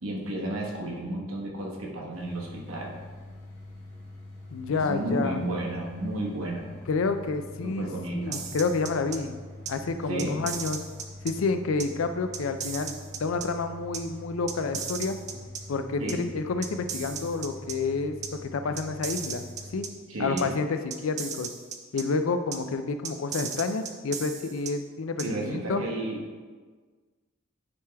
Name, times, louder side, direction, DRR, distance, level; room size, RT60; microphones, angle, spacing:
voice 1, 0.0-2.9 4.7-6.7 7.6-8.4 10.1-10.4 16.0-16.3 20.1-20.5 25.2-26.4, right 1 dB, 90° right, -2 dB, 1.3 m, -32 dB
sound 1, 2.1-19.8, left 2 dB, 60° left, 1.6 m, -45 dB
voice 2, 4.5-5.4 6.9-9.4 9.7-10.8 11.2-15.2 15.7-18.2 18.4-19.4 19.7-19.9 20.2-21.5 21.9-25.8, left 4 dB, 75° left, 8 dB, 0.4 m, -29 dB
sound 2, 8.3-9.2 9.7-9.8 10.2-11.3 11.8-11.9 12.3-13.5 13.9-14.0 14.5-15.6 16.1-16.2 16.6-17.8 18.2-18.3 18.8-19.9 20.4-20.5 20.9-22.0 22.5-22.6 23.0-24.7 25.2-25.3, right 7 dB, 35° right, 0.5 m, -36 dB
9.7 x 3.3 x 3.4 m, 1.5 s
head